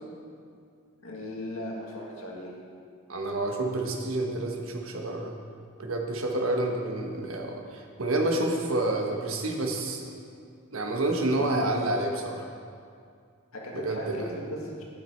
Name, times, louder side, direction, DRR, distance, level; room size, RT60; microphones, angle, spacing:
voice 1, 1.0-2.5 13.5-14.8, left 1 dB, 80° left, -2 dB, 2.1 m, -37 dB
voice 2, 3.1-5.4 5.8-10.2 10.7-12.5 13.7-14.2, right 2 dB, 75° right, 2 dB, 1.3 m, -29 dB
11.5 x 9.5 x 4.5 m, 2.3 s
head